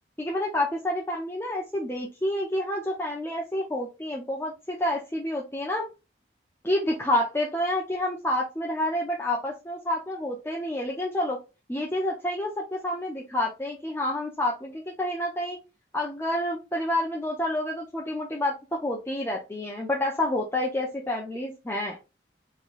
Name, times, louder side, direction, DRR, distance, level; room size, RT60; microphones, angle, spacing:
voice 1, 0.2-5.9 6.6-11.4 11.7-15.6 15.9-22.0, left 1 dB, 15° left, -2 dB, 0.5 m, -29 dB
4.0 x 3.0 x 2.4 m, 0.28 s
head